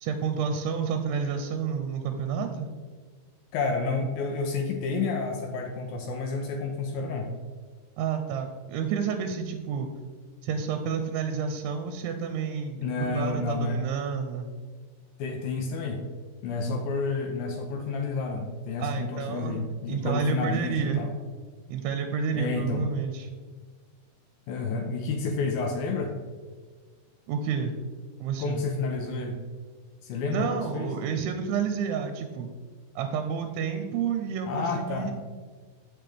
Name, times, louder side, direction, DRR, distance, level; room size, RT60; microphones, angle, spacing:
voice 1, 0.0-2.7 8.0-9.9 10.4-14.5 18.8-19.6 19.9-21.0 21.7-23.3 27.3-27.7 28.2-28.6 30.3-32.5 33.0-35.2, right 6 dB, 85° right, 6 dB, 2.6 m, -30 dB
voice 2, 3.5-7.3 12.8-13.8 15.2-16.0 16.4-21.1 22.3-22.8 24.5-26.2 28.4-29.4 30.0-31.0 34.5-35.1, left 3 dB, 80° left, 3 dB, 2.2 m, -30 dB
7.6 x 6.3 x 3.4 m, 1.4 s
omnidirectional pair, 4.6 m